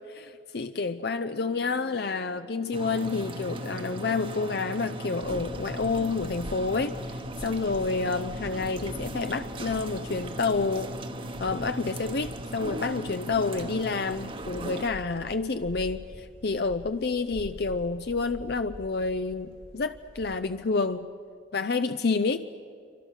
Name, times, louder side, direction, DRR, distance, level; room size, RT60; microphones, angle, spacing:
voice 1, 0.2-10.9 11.4-21.1 21.5-22.4, left 4 dB, 60° left, 9 dB, 0.6 m, -29 dB
sound 1, 1.3-11.3, left 2 dB, 80° left, 2.1 m, -51 dB
sound 2, 2.7-14.9, right 1 dB, 30° right, 1.0 m, -38 dB
sound 3, 5.2-20.4, equal, 85° right, 2.8 m, -46 dB
27.5 x 25.0 x 6.5 m, 2.3 s
head